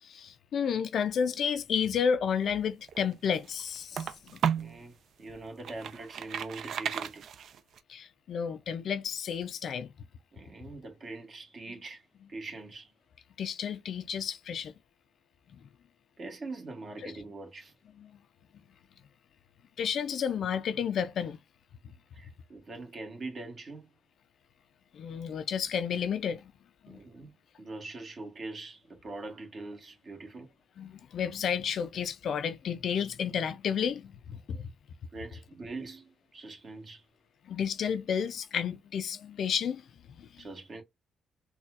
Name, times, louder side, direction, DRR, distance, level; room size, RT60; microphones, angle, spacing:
voice 1, 0.0-4.4 7.9-9.9 13.4-14.7 15.5-15.6 17.0-17.1 18.0-18.1 19.8-21.4 24.9-26.5 26.8-27.0 30.8-34.7 37.4-39.9 40.2-40.5, left 7 dB, 65° left, 0.3 m, -31 dB
sound 1, 2.7-4.8 5.3-7.8, right 8 dB, 65° right, 0.4 m, -34 dB
voice 2, 4.6-4.9 5.2-7.3 10.3-12.9 16.2-17.7 22.1-23.9 26.9-30.5 35.1-37.0 40.4-40.8, right 3 dB, 45° right, 1.3 m, -43 dB
4.1 x 2.2 x 2.4 m
cardioid pair, 90°, 0 cm